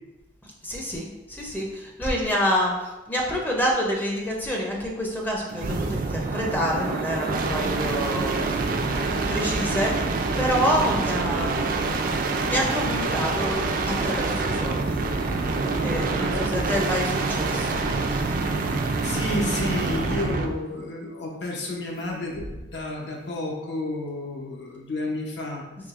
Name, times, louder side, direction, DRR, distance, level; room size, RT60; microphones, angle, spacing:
voice 1, 0.4-11.7 12.4-15.0 15.8-18.4, equal, 10° left, -1 dB, 0.5 m, -28 dB
sound 1, 5.5-20.6 22.3-22.8, right 3 dB, 50° right, 0.3 m, -26 dB
voice 2, 16.2-16.8 19.0-25.6, left 2 dB, 70° left, -1 dB, 0.8 m, -31 dB
4.8 x 2.9 x 2.4 m, 1.1 s
head